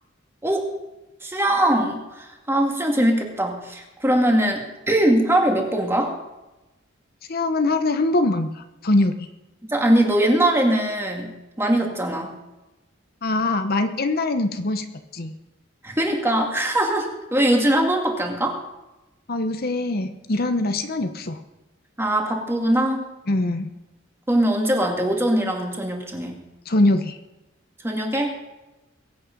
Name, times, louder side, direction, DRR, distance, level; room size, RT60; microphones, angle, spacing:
voice 1, 1.2-6.1 9.6-12.4 15.8-18.6 22.0-23.1 24.3-26.4 27.8-28.3, right 1 dB, 15° right, 1 dB, 2.2 m, -21 dB
voice 2, 7.3-9.3 13.2-14.9 15.1-15.3 19.3-21.4 23.3-23.7 26.7-27.2, left 2 dB, 50° left, 8 dB, 0.9 m, -22 dB
22.0 x 8.7 x 5.3 m, 1.0 s
head